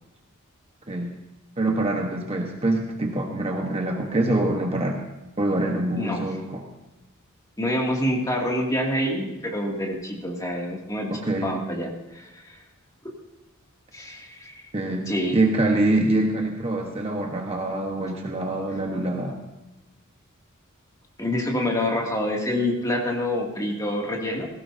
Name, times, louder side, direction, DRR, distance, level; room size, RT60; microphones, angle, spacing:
voice 1, 0.9-1.2 1.6-5.0 5.4-6.7 11.1-11.5 14.7-19.4, right 2 dB, 30° right, 2 dB, 1.2 m, -25 dB
voice 2, 7.6-11.1 11.4-12.6 13.9-14.7 15.1-15.4 21.2-24.5, left 1 dB, 15° left, -2 dB, 2.4 m, -27 dB
17.5 x 16.0 x 2.8 m, 0.98 s
head